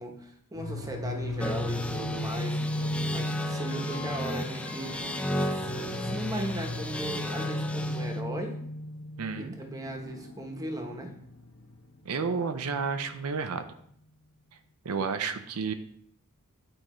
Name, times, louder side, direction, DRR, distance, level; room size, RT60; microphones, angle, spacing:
voice 1, 0.0-2.9 3.1-4.9 5.4-8.6 9.3-11.1, right 1 dB, 15° right, 3 dB, 1.0 m, -37 dB
sound 1, 0.6-13.3, left 1 dB, 85° left, 0.8 m, -36 dB
sound 2, 1.4-8.2, equal, 5° left, 0.4 m, -35 dB
Wind instrument woodwind instrument, 3.5-7.7, left 4 dB, 55° left, 0.9 m, -46 dB
voice 2, 9.2-9.5 12.1-13.7 14.8-15.7, right 5 dB, 85° right, 8 dB, 0.6 m, -31 dB
8.9 x 4.8 x 3.1 m, 0.65 s
head